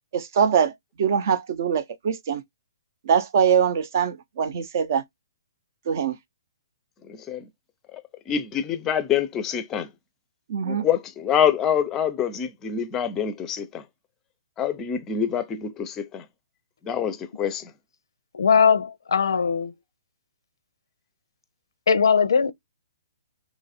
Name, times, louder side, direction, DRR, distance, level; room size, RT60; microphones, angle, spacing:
voice 1, 0.1-0.7 1.0-2.4 3.1-5.0 5.9-6.2 10.5-10.8, right 7 dB, 50° right, 0.6 m, -22 dB
voice 2, 7.1-7.5 8.3-9.9 10.7-13.8 14.6-16.2 16.8-17.7, left 8 dB, 15° left, 0.5 m, -26 dB
voice 3, 18.3-19.7 21.9-22.5, left 6 dB, 90° left, 0.5 m, -20 dB
3.0 x 2.4 x 4.1 m
hypercardioid pair, 160°, 2 cm